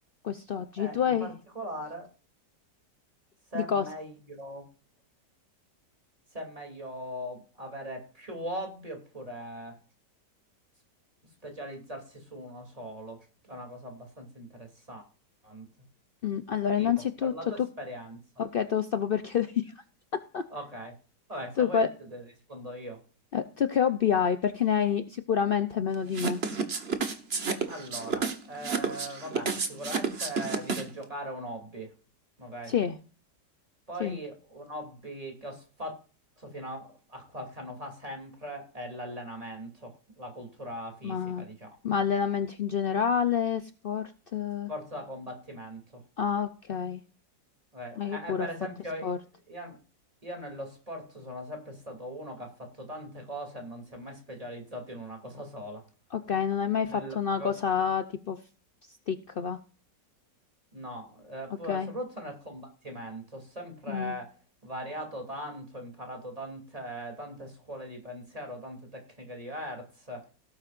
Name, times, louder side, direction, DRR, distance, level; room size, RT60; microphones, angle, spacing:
voice 1, 0.2-1.3 3.5-3.8 16.2-17.3 18.4-19.7 20.3-20.4 21.6-21.9 23.3-26.4 32.7-33.0 34.0-34.2 41.0-41.5 41.8-44.7 46.2-47.0 48.0-48.5 49.0-49.2 56.1-58.4 59.1-59.6 61.7-61.9 63.9-64.1, left 7 dB, 70° left, 9 dB, 0.5 m, -28 dB
voice 2, 0.8-2.1 3.5-4.6 6.3-9.8 11.4-15.0 15.4-15.7 16.8-18.2 20.5-20.9 21.3-23.0 27.7-31.9 32.4-32.7 33.9-36.0 36.4-41.8 44.7-46.0 47.7-49.1 49.5-49.8 50.2-55.8 56.9-57.6 60.7-64.3 64.6-70.3, equal, 20° right, 2 dB, 2.9 m, -40 dB
sound 1, 26.1-31.0, right 5 dB, 40° right, 1.4 m, -30 dB
17.5 x 8.6 x 2.5 m, 0.38 s
omnidirectional pair, 1.9 m